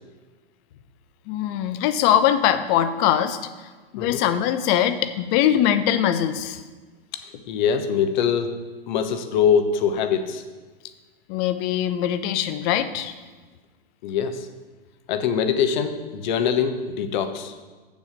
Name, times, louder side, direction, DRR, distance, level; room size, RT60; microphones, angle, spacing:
voice 1, 1.3-3.4 3.9-6.6 11.3-13.1, left 10 dB, 35° left, 11 dB, 0.7 m, -22 dB
voice 2, 7.1-8.6 8.9-10.4 14.0-14.5 15.1-17.5, left 7 dB, 50° left, 8 dB, 1.1 m, -23 dB
7.3 x 7.1 x 6.5 m, 1.3 s
figure-of-eight pair, 105°, 29 cm